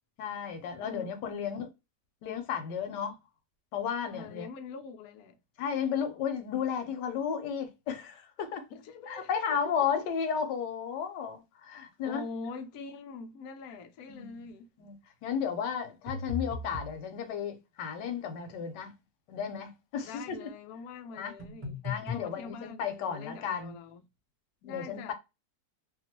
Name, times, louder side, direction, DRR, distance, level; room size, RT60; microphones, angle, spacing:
voice 1, 0.2-1.7 2.2-3.2 3.7-4.5 5.6-8.6 9.1-12.2 14.1-14.5 14.8-14.9 15.2-18.9 19.3-20.5 21.1-21.3 21.8-23.7 24.6-25.1, left 7 dB, 90° left, 1.3 m, -33 dB
voice 2, 4.1-5.4 8.7-9.7 12.0-14.7 20.0-24.1 24.6-25.1, left 4 dB, 70° left, 1.0 m, -44 dB
sound 1, 16.1-17.0 21.4-22.3, left 4 dB, 25° right, 0.8 m, -36 dB
2.9 x 2.3 x 2.8 m
omnidirectional pair, 1.8 m